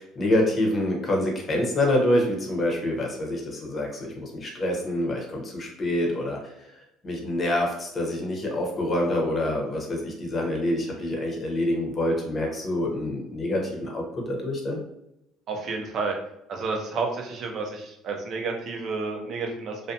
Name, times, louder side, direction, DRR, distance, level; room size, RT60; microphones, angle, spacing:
voice 1, 0.0-6.7 7.0-14.8, left 1 dB, 30° left, 0 dB, 0.8 m, -26 dB
voice 2, 15.5-16.1 16.5-19.8, right 4 dB, 50° right, 2 dB, 0.5 m, -30 dB
2.4 x 2.1 x 2.7 m, 0.82 s
cardioid pair, 110°, 0 cm